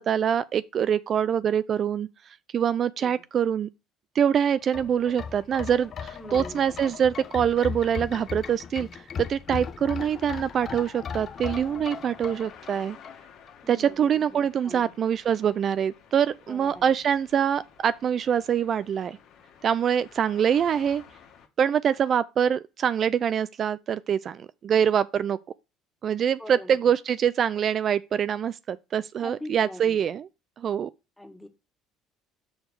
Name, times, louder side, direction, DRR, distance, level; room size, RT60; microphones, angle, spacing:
voice 1, 0.0-3.7 4.1-8.9 9.2-13.0 13.7-19.2 19.6-21.0 21.6-25.4 26.0-30.3 30.6-30.9, right 8 dB, 50° right, 0.3 m, -25 dB
sound 1, 4.6-13.5 13.9-14.0, left 6 dB, 45° left, 0.7 m, -37 dB
voice 2, 6.1-6.7 13.6-14.9 16.5-16.8 26.4-26.8 29.2-30.0 31.2-31.5, left 1 dB, 5° left, 1.7 m, -42 dB
sound 2, 10.1-21.5, left 8 dB, 65° left, 1.5 m, -53 dB
6.3 x 5.2 x 4.6 m
supercardioid pair, 80°, 0 cm